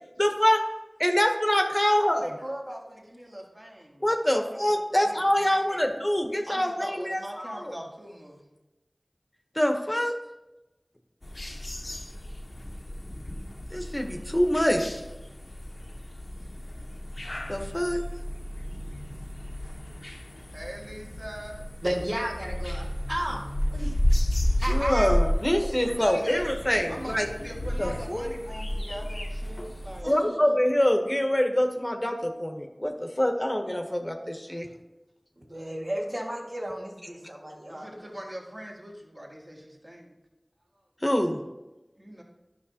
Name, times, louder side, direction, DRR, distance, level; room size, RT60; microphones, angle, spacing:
voice 1, 0.2-0.6 1.0-2.2 4.0-7.6 9.6-10.2 13.7-14.8 17.5-18.0 24.7-27.3 27.8-28.3 30.1-34.7 41.0-41.4, equal, 25° left, 4 dB, 0.9 m, -25 dB
voice 2, 1.8-5.9 6.5-8.5 12.1-12.2 16.7-16.8 20.5-21.7 25.8-26.5 26.9-30.2 34.5-34.9 37.7-40.1 42.0-42.2, equal, 40° right, -2 dB, 1.8 m, -41 dB
sound 1, 11.2-30.0, left 1 dB, 65° left, 0.6 m, -32 dB
voice 3, 21.8-23.4 23.7-24.0 24.5-25.2 25.6-25.7 30.0-30.6 35.4-38.1, equal, 75° right, -4 dB, 1.8 m, -33 dB
11.0 x 5.9 x 2.8 m, 1.0 s
wide cardioid pair, 45°, 0 cm